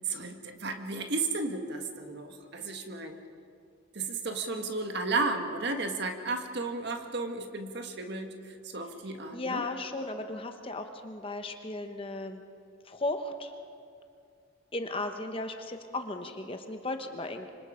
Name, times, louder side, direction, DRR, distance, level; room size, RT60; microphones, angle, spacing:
voice 1, 0.1-3.2 3.9-8.3 8.6-9.6, right 3 dB, 50° right, 5 dB, 1.7 m, -33 dB
voice 2, 9.3-12.4 12.9-13.5 14.7-17.5, left 2 dB, 25° left, 6 dB, 1.1 m, -35 dB
26.0 x 25.0 x 5.1 m, 2.5 s
head